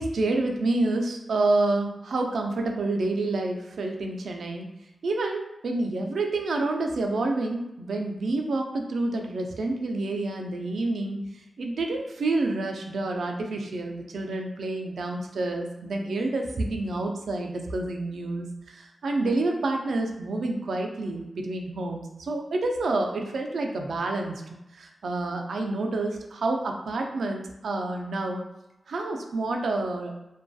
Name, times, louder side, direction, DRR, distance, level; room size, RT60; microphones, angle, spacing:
voice 1, 0.0-4.7 5.0-24.4 24.7-28.4 28.9-30.1, right 2 dB, 90° right, 2 dB, 0.3 m, -28 dB
2.6 x 2.2 x 2.3 m, 0.92 s
wide cardioid pair, 120°, 0 cm